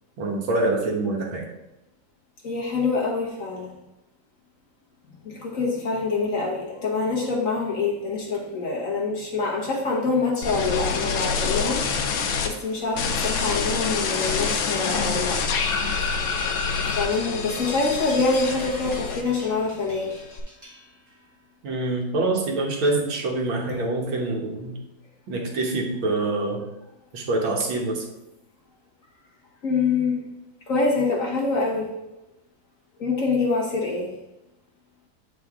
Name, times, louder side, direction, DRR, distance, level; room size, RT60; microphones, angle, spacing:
voice 1, 0.2-1.4 21.6-24.7 25.3-26.6 27.1-28.1, right 2 dB, 80° right, 0 dB, 2.0 m, -25 dB
voice 2, 2.4-3.7 5.2-15.6 16.8-20.1 29.6-30.2 30.7-31.9 33.0-34.1, left 3 dB, 45° left, -2 dB, 1.4 m, -25 dB
sound 1, 10.4-12.5 12.9-19.5 19.8-20.4, left 5 dB, 80° left, 1.6 m, -26 dB
sound 2, 13.1-21.3, equal, 10° right, 2.4 m, -44 dB
8.4 x 4.6 x 3.6 m, 0.94 s
omnidirectional pair, 2.2 m